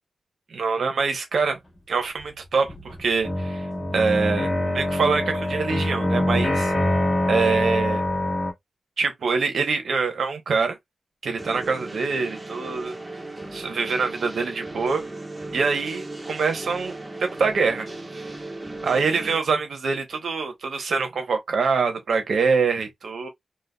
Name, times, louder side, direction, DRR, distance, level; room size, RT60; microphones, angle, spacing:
voice 1, 0.5-1.6 1.9-3.7 3.9-6.7 7.3-8.0 9.0-10.8 11.2-12.9 13.5-15.0 15.5-17.9 18.1-18.3 18.8-23.3, right 5 dB, 90° right, 0.9 m, -24 dB
sound 1, 2.2-2.3 2.7-8.5, left 1 dB, 35° left, 1.6 m, -24 dB
sound 2, 11.4-19.4, right 2 dB, 15° right, 0.6 m, -36 dB
3.8 x 2.3 x 2.2 m
wide cardioid pair, 160°, 0 cm